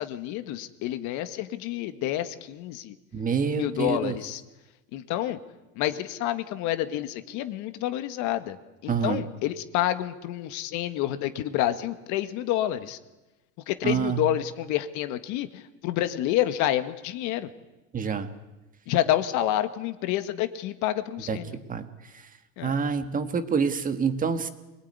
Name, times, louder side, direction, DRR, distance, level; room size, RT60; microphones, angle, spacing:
voice 1, 0.0-2.9 3.5-4.4 4.9-5.4 5.8-8.6 8.8-13.0 13.7-17.5 18.9-21.6 22.6-22.7, left 13 dB, 60° left, 10 dB, 1.9 m, -28 dB
voice 2, 3.1-4.2 8.9-9.2 13.8-14.2 17.9-18.3 21.3-21.4 21.7-21.9 22.6-24.5, right 6 dB, 25° right, 10 dB, 1.6 m, -26 dB
24.5 x 20.5 x 9.7 m, 1.1 s
supercardioid pair, 135°, 34 cm